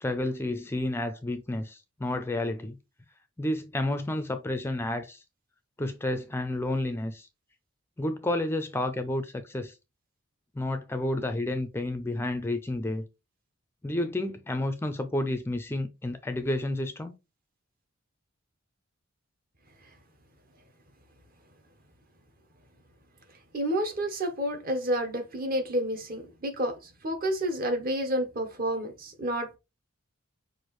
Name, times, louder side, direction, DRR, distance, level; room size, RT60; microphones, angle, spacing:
voice 1, 0.0-2.8 3.4-5.2 5.8-7.3 8.0-9.8 10.6-13.0 13.8-17.1, left 1 dB, 10° left, 0.4 m, -30 dB
voice 2, 23.5-29.6, equal, 45° right, 1.0 m, -30 dB
6.1 x 2.5 x 3.1 m
head